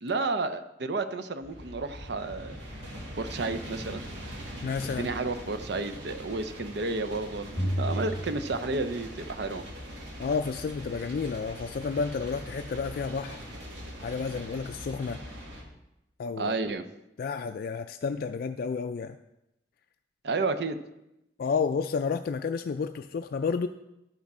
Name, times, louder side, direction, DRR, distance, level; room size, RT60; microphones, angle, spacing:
voice 1, 0.0-2.6 3.2-4.0 5.0-9.6 16.4-16.9 20.2-20.8, right 3 dB, 65° right, 10 dB, 0.6 m, -31 dB
sound 1, 1.4-15.6, equal, 85° right, 2.0 m, -42 dB
voice 2, 4.6-5.1 10.2-13.4 14.0-15.2 16.2-16.5 17.2-19.2 21.4-23.7, left 5 dB, 55° left, 8 dB, 0.3 m, -31 dB
sound 2, 7.6-9.4, equal, 10° left, 1.6 m, -32 dB
11.5 x 6.0 x 4.3 m, 0.89 s
head